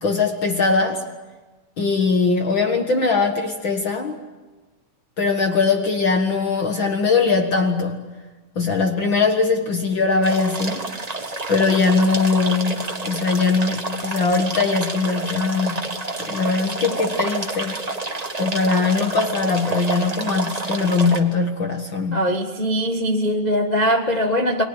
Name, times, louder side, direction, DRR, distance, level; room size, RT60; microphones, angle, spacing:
voice 1, 0.0-1.0 1.8-4.2 5.2-8.0 8.6-10.8 11.5-15.8 16.2-17.8 18.4-22.3, left 4 dB, 45° left, 2.0 m, -21 dB
sound 1, 10.2-21.2, right 2 dB, 35° right, 0.6 m, -29 dB
voice 2, 22.1-24.6, equal, 85° left, 0.3 m, -21 dB
30.0 x 21.5 x 8.9 m
omnidirectional pair, 3.6 m